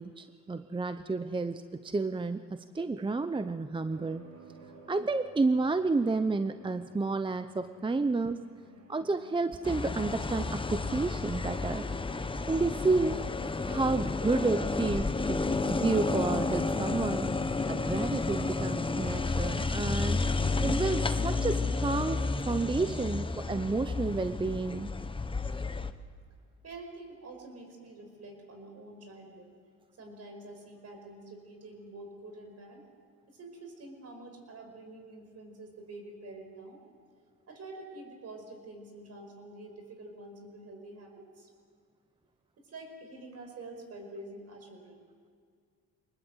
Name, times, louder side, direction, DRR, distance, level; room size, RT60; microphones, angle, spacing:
voice 1, 0.0-4.3 4.9-8.4 8.9-11.8 12.5-13.2 13.6-15.4 15.7-17.3 17.7-20.3 20.6-24.9, right 3 dB, 15° right, 10 dB, 0.7 m, -30 dB
sound 1, 3.9-17.3, right 3 dB, 85° right, 4.9 m, -54 dB
sound 2, 9.6-25.9, left 3 dB, 15° left, 0.9 m, -31 dB
voice 2, 26.6-29.5 30.0-32.8 33.3-36.8 37.5-41.5 42.6-45.0, right 2 dB, 55° right, 4 dB, 5.4 m, -47 dB
23.5 x 20.0 x 8.0 m, 2.1 s
cardioid pair, 90°, 30 cm